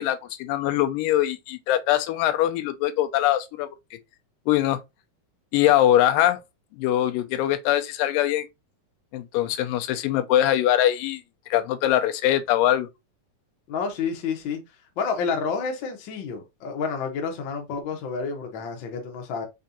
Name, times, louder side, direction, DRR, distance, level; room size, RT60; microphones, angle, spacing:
voice 1, 0.0-3.8 4.5-4.8 5.5-6.4 6.8-8.5 9.1-11.2 11.5-12.9, left 12 dB, 85° left, 2.3 m, -22 dB
voice 2, 13.7-14.6 15.0-19.5, left 5 dB, 70° left, 1.1 m, -29 dB
5.4 x 3.5 x 2.7 m
omnidirectional pair, 3.8 m